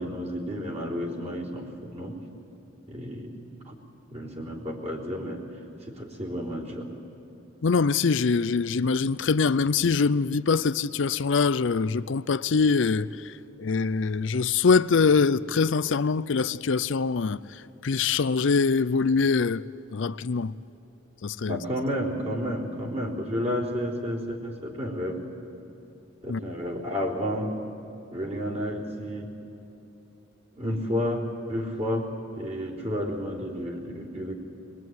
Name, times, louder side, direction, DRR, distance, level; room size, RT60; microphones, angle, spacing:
voice 1, 0.0-2.2 2.9-3.4 3.7-3.8 4.1-5.4 5.8-6.9 21.5-25.2 26.2-27.5 28.1-29.3 30.6-34.3, equal, 30° right, 3.7 m, -31 dB
voice 2, 7.6-13.1 13.6-17.4 17.8-19.6 19.9-20.5 21.2-21.6 26.3-26.4, left 5 dB, 70° left, 0.5 m, -23 dB
22.0 x 22.0 x 9.5 m
head